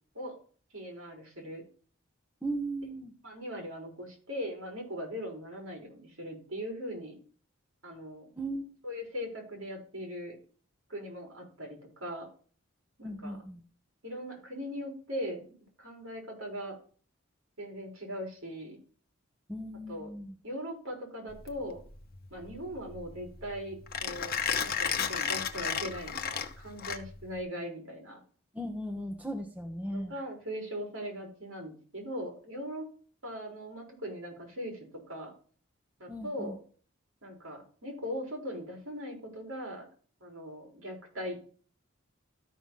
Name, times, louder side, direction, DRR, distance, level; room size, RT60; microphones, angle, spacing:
voice 1, 0.7-1.6 3.2-7.2 7.8-8.3 8.8-10.4 10.9-12.3 13.0-13.4 14.0-15.4 15.8-16.8 17.6-18.8 19.9-20.1 20.4-21.8 22.3-24.4 24.6-28.2 29.9-32.9 33.2-34.8 35.1-35.3 36.0-36.6 37.2-39.9 40.2-41.4, equal, 65° right, 1 dB, 4.2 m, -40 dB
voice 2, 2.4-3.1 8.3-8.8 13.0-13.6 19.5-20.3 28.5-30.1 36.1-36.6, right 1 dB, 5° right, 3 dB, 1.1 m, -37 dB
Mechanisms, 21.3-27.4, left 7 dB, 45° left, 1.0 m, -33 dB
13.0 x 5.9 x 3.8 m, 0.41 s
head